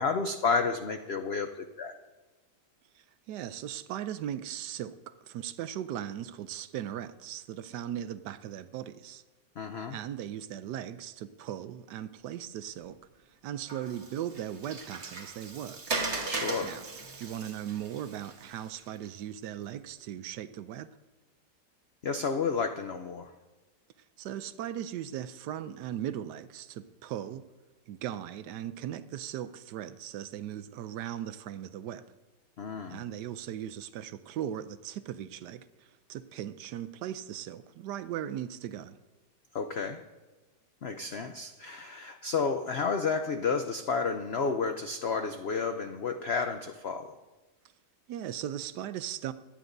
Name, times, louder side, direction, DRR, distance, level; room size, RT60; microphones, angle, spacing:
voice 1, 0.0-1.9 9.6-10.0 16.3-16.8 22.0-23.3 32.6-33.0 39.5-40.0 40.8-47.2, left 5 dB, 75° left, 7 dB, 0.6 m, -31 dB
voice 2, 2.9-9.2 9.9-13.0 13.4-16.0 16.6-16.8 17.1-20.9 24.2-27.4 27.9-32.0 32.9-39.0 48.1-49.3, right 11 dB, 75° right, 12 dB, 1.1 m, -38 dB
Water, 13.7-19.1, right 3 dB, 40° right, 1.5 m, -38 dB
24.5 x 10.0 x 2.6 m, 1.2 s
omnidirectional pair, 1.9 m